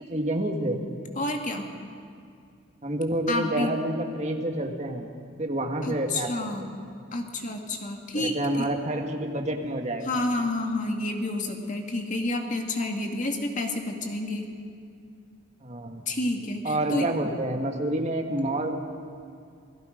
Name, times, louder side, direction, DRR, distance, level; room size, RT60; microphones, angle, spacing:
voice 1, 0.1-0.8 2.8-5.1 5.4-6.3 8.1-10.1 15.6-16.0 16.6-18.7, right 1 dB, 35° right, 3 dB, 1.8 m, -28 dB
voice 2, 1.2-1.7 3.3-3.7 5.8-6.7 7.1-8.7 10.0-14.5 16.1-17.1, left 2 dB, 40° left, 3 dB, 2.1 m, -29 dB
28.5 x 17.5 x 5.3 m, 2.4 s
head